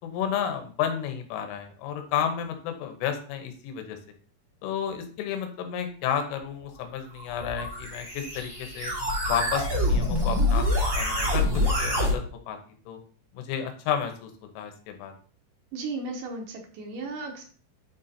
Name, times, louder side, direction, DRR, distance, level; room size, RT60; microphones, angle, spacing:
voice 1, 0.0-4.0 4.6-8.9 9.3-10.7 10.9-11.5 11.8-12.2 12.5-12.6 12.9-13.0 13.3-15.1, left 8 dB, 90° left, 5 dB, 3.5 m, -31 dB
sound 1, 7.2-12.1, left 1 dB, 5° right, 2.3 m, -26 dB
voice 2, 15.7-17.4, right 3 dB, 80° right, 1 dB, 1.9 m, -35 dB
9.2 x 3.9 x 4.2 m, 0.43 s
omnidirectional pair, 5.5 m